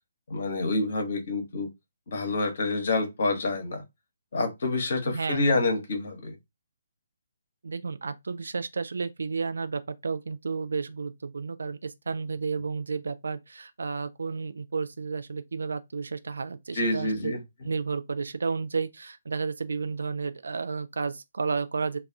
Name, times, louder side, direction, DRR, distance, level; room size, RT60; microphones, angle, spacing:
voice 1, 0.3-1.7 2.1-3.8 4.3-6.4 16.7-17.7, left 2 dB, 50° left, 0.9 m, -27 dB
voice 2, 5.0-5.6 7.6-22.0, right 4 dB, 60° right, 0.3 m, -32 dB
2.3 x 2.3 x 3.4 m
figure-of-eight pair, 135°, 0 cm